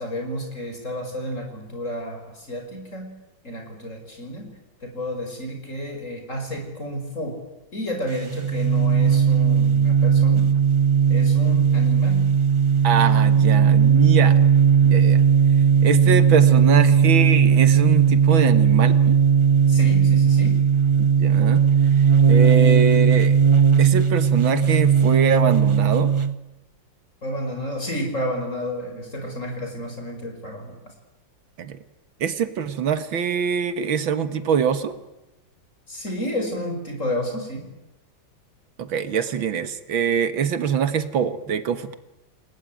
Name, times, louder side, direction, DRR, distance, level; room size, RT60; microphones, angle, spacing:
voice 1, 0.0-3.1 3.4-4.5 4.8-7.4 7.7-10.5 11.1-12.3 19.7-20.6 27.2-30.8 35.9-37.7, equal, 40° left, 4 dB, 5.8 m, -31 dB
sound 1, 8.1-26.3, right 7 dB, 45° right, 0.3 m, -17 dB
voice 2, 12.8-14.4 14.8-15.2 15.8-19.2 21.0-21.6 22.3-23.4 23.8-26.1 31.6-31.8 32.2-35.0 38.8-42.0, right 7 dB, 80° right, 12 dB, 2.2 m, -23 dB
29.5 x 20.0 x 9.2 m, 0.98 s
omnidirectional pair, 2.1 m